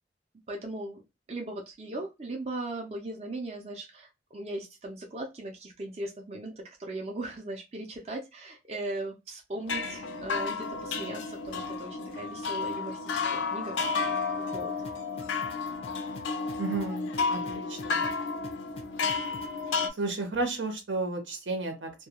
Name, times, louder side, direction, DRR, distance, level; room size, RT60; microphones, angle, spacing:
voice 1, 0.5-1.0 1.3-14.7, right 2 dB, 35° right, 1 dB, 0.5 m, -38 dB
sound 1, 9.6-19.9, left 4 dB, 90° left, 0.4 m, -32 dB
sound 2, 14.5-19.6, left 3 dB, 30° left, 0.4 m, -46 dB
voice 2, 16.6-18.0 20.0-21.9, right 3 dB, 85° right, 4 dB, 0.9 m, -32 dB
2.2 x 2.2 x 2.8 m, 0.24 s
head